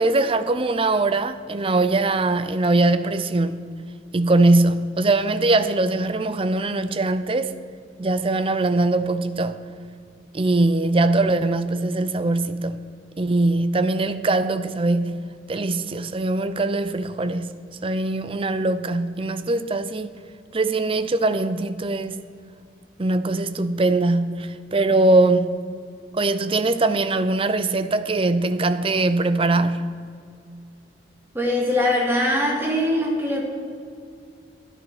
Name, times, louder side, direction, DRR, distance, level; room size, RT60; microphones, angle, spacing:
voice 1, 0.0-3.7 4.1-7.5 8.0-9.6 10.3-12.8 13.2-17.6 17.8-20.1 20.5-22.2 23.0-25.6 26.1-29.9, right 2 dB, 30° right, 0.5 m, -21 dB
voice 2, 31.3-33.4, left 1 dB, 10° right, 2.1 m, -22 dB
13.0 x 10.5 x 5.9 m
head